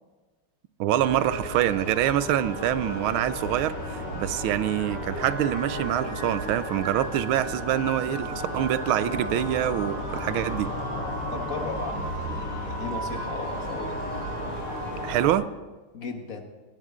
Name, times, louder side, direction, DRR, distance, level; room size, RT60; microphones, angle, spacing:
voice 1, 0.8-3.7 4.1-10.7 15.0-15.5, right 12 dB, 75° right, 15 dB, 1.5 m, -25 dB
sound 1, 1.0-15.3, left 1 dB, 75° left, 3.7 m, -35 dB
sound 2, 1.0-15.3, right 1 dB, 60° right, 8.1 m, -37 dB
voice 2, 11.3-14.1 15.9-16.4, left 3 dB, 40° left, 4 dB, 1.8 m, -36 dB
18.5 x 18.5 x 3.7 m, 1.3 s
omnidirectional pair, 2.4 m